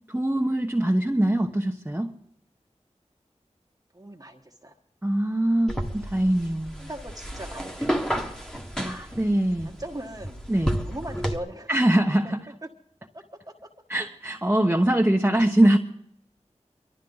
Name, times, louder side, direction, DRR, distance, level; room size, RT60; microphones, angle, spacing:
voice 1, 0.1-2.1 5.0-6.9 8.8-9.7 10.5-10.7 11.7-12.4 13.9-15.8, right 1 dB, 15° right, 1 dB, 1.1 m, -23 dB
voice 2, 3.9-4.7 6.8-8.5 8.8-9.2 9.6-10.4 10.8-11.7 12.6-12.7 13.1-13.7, right 1 dB, 30° right, 0 dB, 1.3 m, -40 dB
sound 1, 5.7-11.4, equal, 5° left, 1.6 m, -31 dB
23.5 x 12.5 x 4.0 m, 0.76 s
wide cardioid pair, 50°, 12 cm